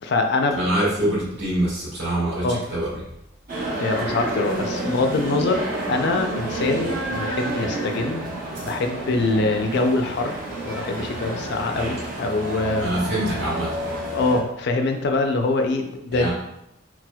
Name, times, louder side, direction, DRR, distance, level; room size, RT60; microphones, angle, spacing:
voice 1, 0.0-0.6 2.4-2.6 3.8-8.2 8.6-10.3 10.6-12.9 14.1-16.3, left 3 dB, 55° left, 5 dB, 0.3 m, -24 dB
voice 2, 0.5-2.9 12.8-13.7 16.1-16.3, right 1 dB, 60° right, -6 dB, 1.2 m, -24 dB
sound 1, 3.5-14.4, right 2 dB, 40° right, 0.7 m, -29 dB
4.2 x 2.0 x 2.2 m, 0.82 s
head